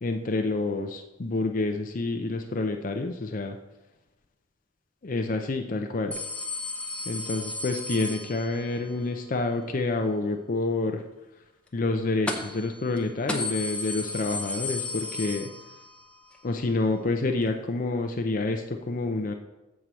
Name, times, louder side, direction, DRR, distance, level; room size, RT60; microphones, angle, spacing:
voice 1, 0.0-3.6 5.0-6.2 7.1-11.0 11.7-15.5 16.4-19.3, left 2 dB, 45° left, 4 dB, 0.5 m, -28 dB
sound 1, 6.1-8.8 12.3-12.7 13.0-13.1 13.3-16.0 16.3-16.4 17.5-17.6, left 2 dB, 5° left, 0.8 m, -34 dB
7.4 x 4.7 x 6.8 m, 1.0 s
head